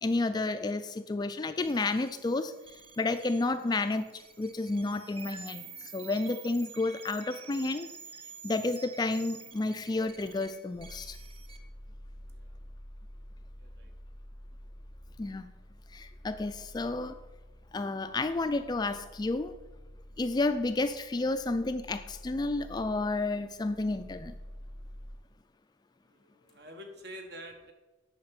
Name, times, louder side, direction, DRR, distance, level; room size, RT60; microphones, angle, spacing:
voice 1, 0.0-2.5 3.0-7.9 8.4-11.2 15.2-15.5 15.9-17.2 17.7-19.5 20.2-24.3, left 2 dB, 20° left, 10 dB, 0.3 m, -31 dB
sound 1, 1.6-11.6, right 6 dB, 30° right, 0.7 m, -49 dB
sound 2, 10.7-25.1, equal, 75° right, 3.7 m, -49 dB
voice 2, 13.6-13.9 26.0-27.7, equal, 55° right, 5 dB, 1.3 m, -47 dB
8.6 x 5.8 x 5.9 m, 1.1 s
head